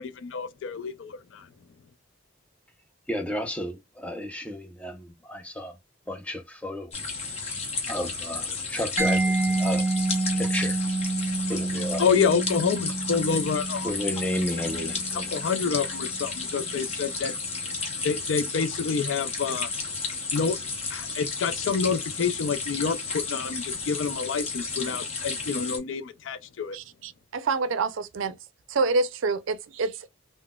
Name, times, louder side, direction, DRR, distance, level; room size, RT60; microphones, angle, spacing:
voice 1, 0.0-1.5 12.0-13.9 15.3-17.3 18.0-19.7 20.3-20.6 20.9-26.8, left 6 dB, 70° left, 0.4 m, -28 dB
voice 2, 3.1-5.8 6.1-6.9 7.9-9.9 10.3-10.8 11.5-12.1 13.8-15.3, left 1 dB, 5° left, 0.5 m, -32 dB
sound 1, 6.9-25.8, left 4 dB, 30° left, 0.8 m, -33 dB
Mallet percussion, 9.0-16.5, right 3 dB, 15° right, 0.8 m, -29 dB
voice 3, 26.7-28.4 28.7-30.1, right 3 dB, 75° right, 0.4 m, -27 dB
3.8 x 2.0 x 2.3 m
head